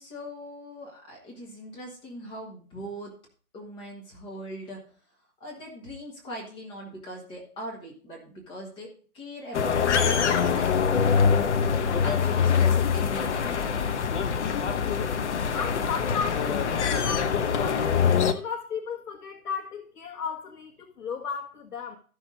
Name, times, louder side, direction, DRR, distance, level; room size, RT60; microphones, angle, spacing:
voice 1, 0.0-3.1 3.5-4.8 5.4-8.9 9.1-14.0, equal, 10° left, 1.5 m, -40 dB
sound 1, 9.5-18.3, left 6 dB, 50° left, 1.0 m, -24 dB
voice 2, 15.5-20.7 21.0-22.0, left 6 dB, 70° left, 1.7 m, -35 dB
13.5 x 6.4 x 3.8 m
hypercardioid pair, 155°, 46 cm